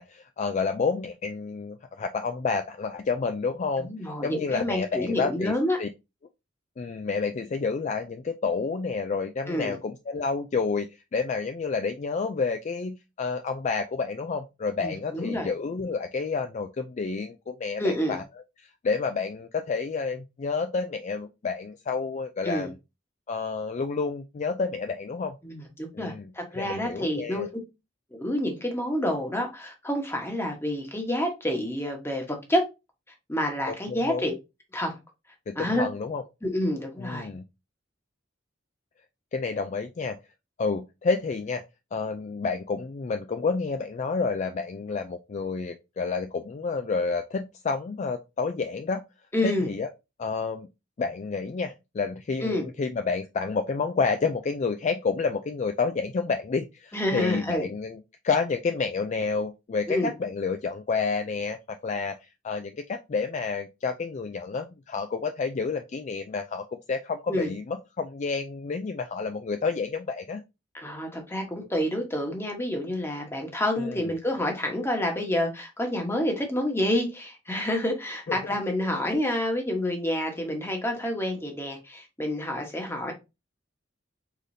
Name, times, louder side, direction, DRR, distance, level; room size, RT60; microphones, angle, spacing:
voice 1, 0.0-3.9 4.2-5.5 5.8-5.9 6.8-10.9 11.1-18.2 18.6-22.7 23.3-25.4 25.9-27.5 33.7-34.2 35.5-36.2 37.0-37.4 39.3-40.2 40.6-41.6 41.9-49.0 49.4-49.9 50.2-50.7 51.0-70.4 73.8-74.1 78.3-78.4 78.9-79.0, left 4 dB, 35° left, 0.3 m, -29 dB
voice 2, 3.8-5.8 9.5-9.8 14.8-15.5 17.8-18.2 22.4-22.7 25.4-27.4 28.2-32.6 33.3-34.3 34.7-35.0 35.6-35.9 36.4-37.3 49.3-49.7 52.4-52.7 56.9-57.7 59.9-60.1 67.3-67.5 70.7-83.1, left 1 dB, 15° left, 1.1 m, -28 dB
4.9 x 4.0 x 2.7 m
head